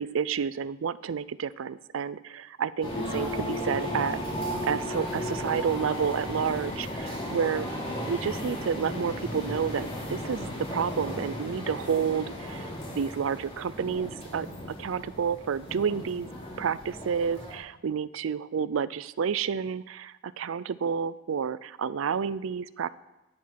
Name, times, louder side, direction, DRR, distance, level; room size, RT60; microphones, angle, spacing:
voice 1, 0.0-4.2 4.6-7.7 8.1-12.7 12.9-14.5 14.8-16.3 16.6-22.9, right 6 dB, 85° right, 18 dB, 0.4 m, -30 dB
sound 1, 2.8-17.5, equal, 30° left, 2.9 m, -35 dB
10.5 x 7.4 x 5.8 m, 1.0 s
head